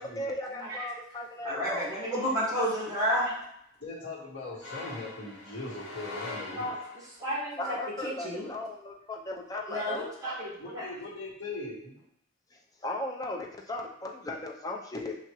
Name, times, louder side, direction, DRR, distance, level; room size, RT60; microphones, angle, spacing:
voice 1, 0.0-1.9 7.6-10.1 12.5-15.2, left 1 dB, 20° left, 1 dB, 0.5 m, -37 dB
voice 2, 0.5-0.8 1.4-3.4 6.6-6.7 7.2-7.8 8.0-8.5 9.7-10.9, equal, 15° right, -7 dB, 1.7 m, -31 dB
voice 3, 3.8-6.7 10.6-11.9, left 2 dB, 60° left, -7 dB, 1.6 m, -40 dB
sound 1, 4.6-7.2, left 3 dB, 90° left, 1.1 m, -42 dB
5.7 x 2.8 x 3.0 m, 0.73 s
head